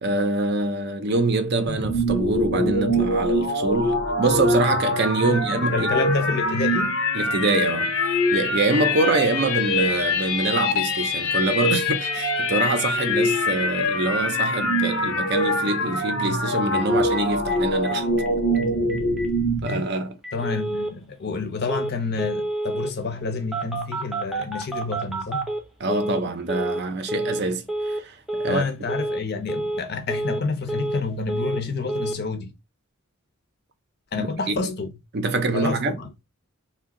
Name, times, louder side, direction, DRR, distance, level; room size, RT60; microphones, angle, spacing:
voice 1, 0.0-5.9 7.1-18.2 19.6-20.2 25.8-28.7 34.2-34.7 35.1-36.0, right 2 dB, 50° right, 0.5 m, -25 dB
sound 1, 1.7-19.8, left 1 dB, 85° left, 0.8 m, -24 dB
voice 2, 5.7-7.0 20.3-25.5 28.5-32.5 34.1-34.9 35.5-36.1, left 4 dB, 50° left, 0.6 m, -28 dB
Telephone, 16.7-16.8 17.1-17.2 17.5-17.6 17.8-18.3 18.5-18.6 18.9-19.3 19.7-19.8 20.2-20.9 21.7-21.9 22.2-22.9 23.5-26.2 26.5-26.8 27.1-27.4 27.7-28.0 28.3-28.6 28.9-29.2 29.5-29.8 30.1-31.0 31.3-31.6 31.9-32.1, right 2 dB, ahead, 0.6 m, -29 dB
2.6 x 2.2 x 3.6 m
head